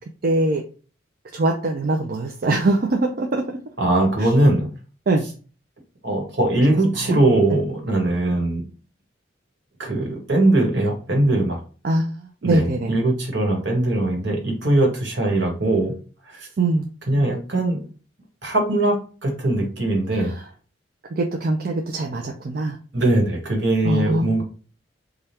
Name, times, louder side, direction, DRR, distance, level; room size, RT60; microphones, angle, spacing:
voice 1, 0.2-0.6 1.3-3.6 5.1-5.2 6.7-7.2 11.8-12.9 16.6-16.9 20.1-20.4 21.2-22.8 23.8-24.4, right 2 dB, 50° right, 2 dB, 0.4 m, -23 dB
voice 2, 3.8-4.7 6.0-8.6 9.8-11.6 12.4-16.0 16.3-16.5 17.1-17.8 18.4-20.3 22.9-24.4, right 1 dB, 70° right, 1 dB, 1.3 m, -20 dB
3.4 x 2.3 x 4.2 m, 0.37 s
head